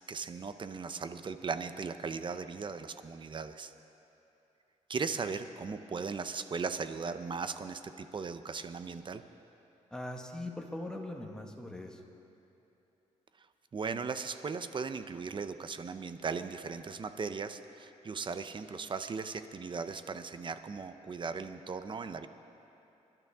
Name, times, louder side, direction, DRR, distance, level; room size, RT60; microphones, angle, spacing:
voice 1, 0.1-3.7 4.9-9.2 13.7-22.3, right 5 dB, 40° right, 10 dB, 0.7 m, -38 dB
voice 2, 9.9-12.0, left 1 dB, 5° left, 1 dB, 1.7 m, -41 dB
27.0 x 12.0 x 3.6 m, 2.9 s
cardioid pair, 95°, 13 cm